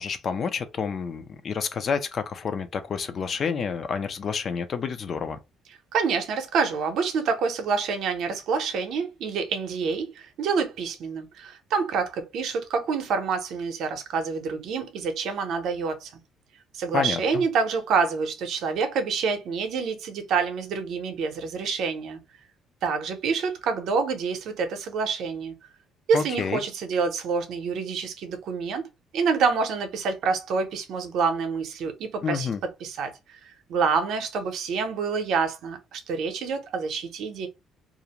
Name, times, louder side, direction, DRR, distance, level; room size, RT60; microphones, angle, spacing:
voice 1, 0.0-5.4 16.9-17.4 26.1-26.6 32.2-32.6, left 6 dB, 40° left, 0.4 m, -29 dB
voice 2, 5.9-16.1 16.7-22.2 22.8-25.5 26.1-28.8 29.1-32.5 32.8-37.5, right 5 dB, 65° right, 0.6 m, -27 dB
2.4 x 2.1 x 2.9 m
cardioid pair, 155°, 0 cm